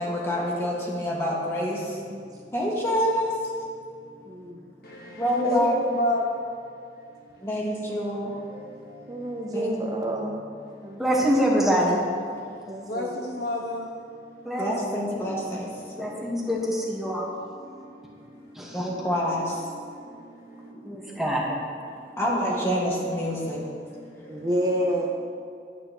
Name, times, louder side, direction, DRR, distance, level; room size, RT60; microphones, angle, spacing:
voice 1, 0.0-2.1 2.5-4.4 5.2-5.8 7.4-9.2 9.5-10.0 10.7-11.0 14.3-16.0 17.6-20.5 21.0-21.2 21.9-24.5, equal, 15° left, -4 dB, 1.7 m, -29 dB
voice 2, 4.3-4.6 9.1-10.4 10.8-11.0 12.7-13.2 19.4-19.6 24.3-25.1, right 1 dB, 20° right, -1 dB, 0.7 m, -29 dB
voice 3, 4.8-6.4 7.0-7.5 8.3-9.4 10.7-11.0 12.5-13.9 14.4-14.5 17.7-17.8 18.0-18.8 20.0-20.2 21.1-21.2 22.0-22.2 24.2-24.5, left 2 dB, 60° left, -1 dB, 1.4 m, -32 dB
voice 4, 11.0-12.0 14.4-14.7 16.0-17.3 18.5-18.9 20.9-21.6, equal, ahead, -4 dB, 1.3 m, -25 dB
12.0 x 8.8 x 3.0 m, 2.4 s
head